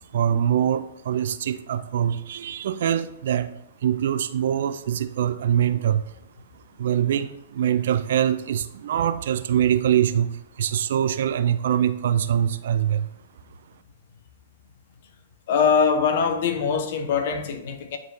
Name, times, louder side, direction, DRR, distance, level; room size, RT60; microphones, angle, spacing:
voice 1, 0.1-3.5 3.8-6.1 6.8-13.1, right 9 dB, 55° right, 0.4 m, -23 dB
voice 2, 15.5-18.0, left 6 dB, 50° left, 0.8 m, -22 dB
9.7 x 3.9 x 2.7 m
figure-of-eight pair, 110°, 0 cm